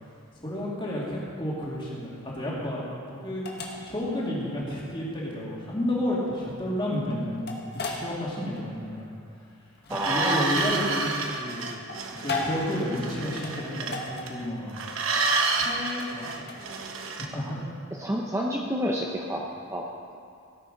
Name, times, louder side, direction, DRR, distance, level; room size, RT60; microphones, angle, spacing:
voice 1, 0.3-3.4 3.8-9.2 9.9-11.1 11.4-11.7 12.2-14.7 15.6-16.8 17.1-17.6, left 1 dB, 20° left, -5 dB, 2.4 m, -31 dB
sound 1, 1.7-17.1, left 3 dB, 50° left, 1.4 m, -38 dB
voice 2, 9.9-10.5 17.3-17.5 18.0-19.9, equal, 15° right, -2 dB, 0.6 m, -29 dB
sound 2, 9.9-14.4 14.7-17.3, right 3 dB, 65° right, 1.0 m, -29 dB
17.5 x 6.7 x 5.1 m, 2.4 s
head